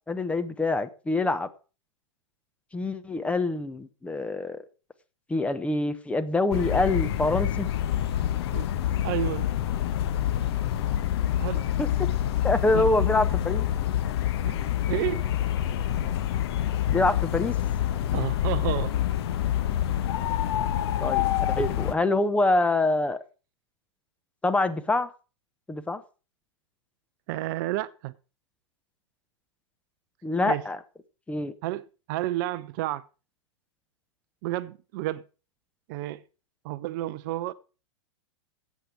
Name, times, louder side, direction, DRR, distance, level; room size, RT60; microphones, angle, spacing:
voice 1, 0.1-1.5 2.7-4.6 5.3-7.7 11.8-12.1 12.4-13.7 16.9-17.5 21.0-23.2 24.4-25.1 25.7-26.0 30.2-30.8 31.3-31.5, left 2 dB, 10° left, 0.9 m, -25 dB
sound 1, 6.5-21.9, left 11 dB, 55° left, 1.2 m, -27 dB
voice 2, 9.0-9.5 11.4-11.7 12.7-13.1 14.5-14.6 14.9-15.2 18.1-19.0 27.3-28.1 30.5-30.6 31.6-33.1 34.4-35.2 35.9-36.2 36.6-37.5, right 15 dB, 40° right, 0.5 m, -31 dB
13.5 x 8.3 x 4.8 m
figure-of-eight pair, 105°, 16 cm